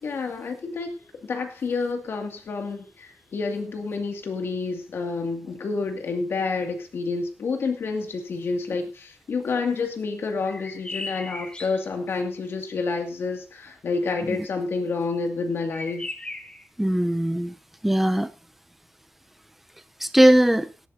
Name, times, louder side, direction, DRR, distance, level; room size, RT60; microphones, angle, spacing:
voice 1, 0.0-16.1, left 4 dB, 85° left, 2.3 m, -29 dB
sound 1, 10.4-11.9 15.7-16.7, left 2 dB, 25° left, 1.3 m, -37 dB
voice 2, 16.8-17.5 17.8-18.3 20.0-20.7, right 1 dB, 5° right, 0.7 m, -19 dB
17.5 x 12.0 x 2.7 m
wide cardioid pair, 125°, 4 cm